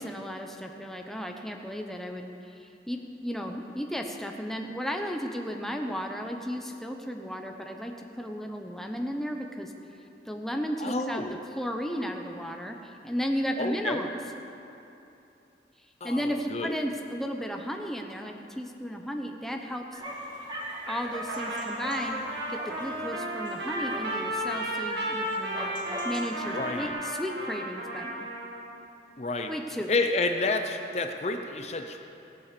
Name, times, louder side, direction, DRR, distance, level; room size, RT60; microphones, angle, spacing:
voice 1, 0.0-9.7 10.2-11.2 11.6-14.1 16.0-20.0 20.9-22.2 22.5-25.8 26.0-28.3 29.5-29.9, equal, ahead, 2 dB, 0.8 m, -34 dB
voice 2, 10.8-11.4 13.6-14.0 16.0-16.7 26.5-27.0 29.2-29.5 29.9-32.0, left 3 dB, 35° left, 5 dB, 0.7 m, -30 dB
sound 1, 19.9-26.9, right 1 dB, 25° right, 2.2 m, -41 dB
Trumpet, 21.3-28.6, right 1 dB, 75° right, 2.2 m, -33 dB
18.0 x 8.4 x 6.8 m, 2.9 s
head